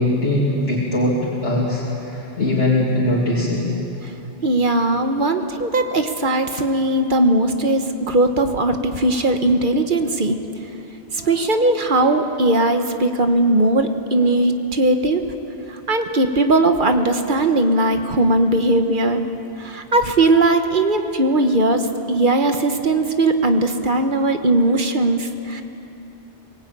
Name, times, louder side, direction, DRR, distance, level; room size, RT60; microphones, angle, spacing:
voice 1, 0.0-3.8 11.2-11.4, left 1 dB, 75° left, -6 dB, 2.9 m, -21 dB
voice 2, 4.4-10.4 11.2-15.2 15.9-19.2 19.6-21.8 22.1-25.6, right 2 dB, 45° right, 6 dB, 1.3 m, -18 dB
23.0 x 18.5 x 8.9 m, 2.9 s
omnidirectional pair, 1.2 m